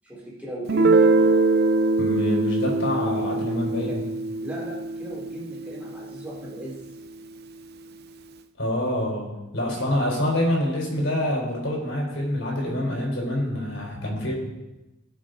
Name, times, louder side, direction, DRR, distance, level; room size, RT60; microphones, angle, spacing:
voice 1, 0.0-1.0 4.0-4.1 4.4-6.8, equal, 10° right, -6 dB, 3.9 m, -37 dB
Guitar, 0.7-6.2, right 3 dB, 55° right, 0.6 m, -22 dB
voice 2, 2.0-4.0 8.6-14.3, left 1 dB, 70° left, -2 dB, 4.5 m, -26 dB
18.0 x 6.7 x 4.0 m, 1.0 s
head